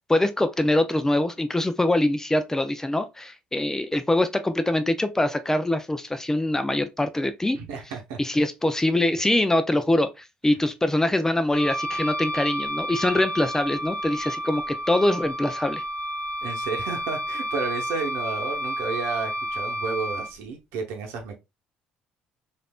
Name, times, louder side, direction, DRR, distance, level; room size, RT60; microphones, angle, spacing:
voice 1, 0.1-7.6 8.2-15.8, left 1 dB, 15° left, 0.4 m, -23 dB
voice 2, 7.5-8.2 16.4-21.4, right 4 dB, 75° right, 0.8 m, -32 dB
Wind instrument woodwind instrument, 11.5-20.3, equal, 35° left, 1.0 m, -30 dB
3.3 x 2.5 x 2.3 m
hypercardioid pair, 60°, 4 cm